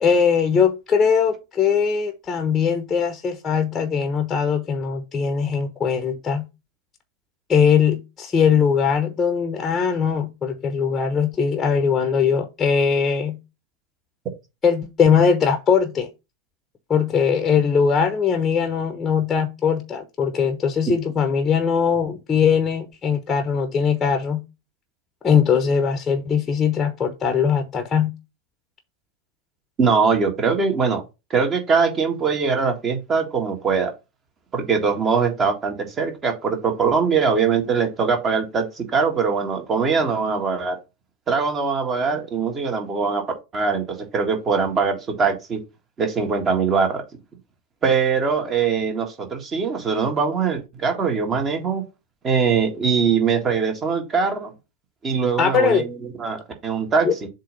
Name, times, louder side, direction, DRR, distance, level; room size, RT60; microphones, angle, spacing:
voice 1, 0.0-6.5 7.5-13.4 14.6-16.1 16.9-24.4 25.2-28.1 55.4-55.9 57.0-57.1, left 6 dB, 15° left, 1.0 m, -20 dB
voice 2, 29.8-31.0 31.3-33.9 34.5-40.8 41.3-43.2 43.5-45.6 46.0-47.0 47.8-51.8 52.2-54.5 55.0-57.3, right 5 dB, 25° right, 1.7 m, -22 dB
7.4 x 2.8 x 5.4 m
figure-of-eight pair, 90°, 0 cm